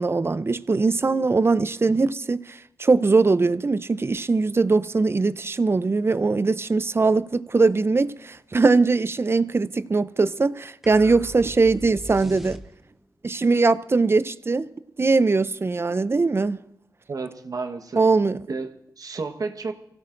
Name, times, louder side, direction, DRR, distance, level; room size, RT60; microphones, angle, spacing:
voice 1, 0.0-12.6 13.2-14.7 15.0-16.6 18.0-18.4, right 3 dB, 35° right, 0.5 m, -21 dB
sound 1, 10.8-13.1, equal, 5° right, 1.1 m, -39 dB
voice 2, 17.1-18.0 18.5-19.7, right 4 dB, 60° right, 1.2 m, -32 dB
24.5 x 16.5 x 2.6 m
cardioid pair, 50°, 7 cm